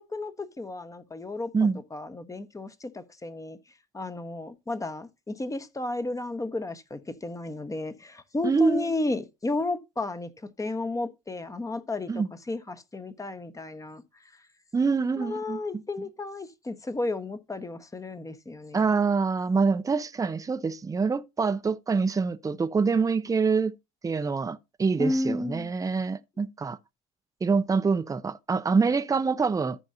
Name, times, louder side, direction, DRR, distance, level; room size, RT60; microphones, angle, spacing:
voice 1, 0.0-3.6 3.9-14.0 15.2-18.9 25.0-25.7, left 2 dB, 15° left, 1.1 m, -33 dB
voice 2, 8.4-8.9 12.1-12.3 14.7-15.6 18.7-23.8 24.0-26.8 27.4-29.8, right 4 dB, 15° right, 0.6 m, -25 dB
14.0 x 5.4 x 2.6 m
hypercardioid pair, 70°, 19 cm